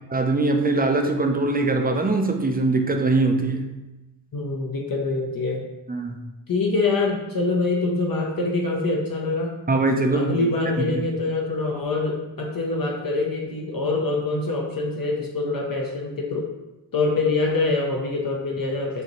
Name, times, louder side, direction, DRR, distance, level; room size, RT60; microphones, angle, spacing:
voice 1, 0.1-3.7 5.9-6.2 9.7-10.5 10.8-11.0, right 2 dB, 20° right, 4 dB, 0.4 m, -22 dB
voice 2, 4.3-5.6 6.5-9.6 10.1-16.5 16.9-19.0, left 3 dB, 55° left, -1 dB, 0.7 m, -25 dB
6.5 x 2.6 x 3.0 m, 1.0 s
wide cardioid pair, 115°, 42 cm